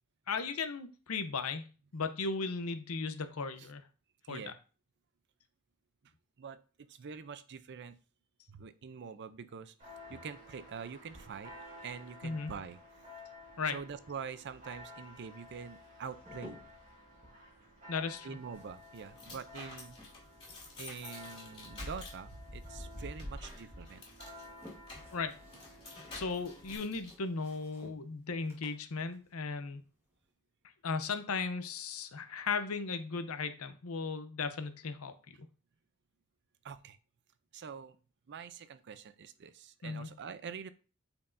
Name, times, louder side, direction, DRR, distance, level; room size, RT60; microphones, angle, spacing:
voice 1, 0.3-1.6 1.9-3.8 4.3-4.5 12.2-12.5 13.6-13.8 17.9-18.4 25.1-25.3 26.1-29.8 30.8-35.1 39.8-40.1, left 4 dB, 75° left, 10 dB, 0.7 m, -36 dB
voice 2, 4.2-4.6 6.4-8.0 8.5-9.7 10.1-11.5 11.8-12.8 13.7-16.6 18.2-20.0 20.8-24.0 36.6-37.0 37.5-38.0 38.3-40.7, right 6 dB, 50° right, 13 dB, 0.5 m, -45 dB
Church bell, 9.8-26.8, left 1 dB, 35° right, 3.2 m, -53 dB
sound 1, 15.6-16.9 18.0-20.4 20.7-22.5 22.8-23.7 24.2-30.3, left 1 dB, 10° right, 1.6 m, -58 dB
sound 2, 18.5-27.1, left 1 dB, 25° left, 2.6 m, -48 dB
8.6 x 4.5 x 2.6 m, 0.36 s
head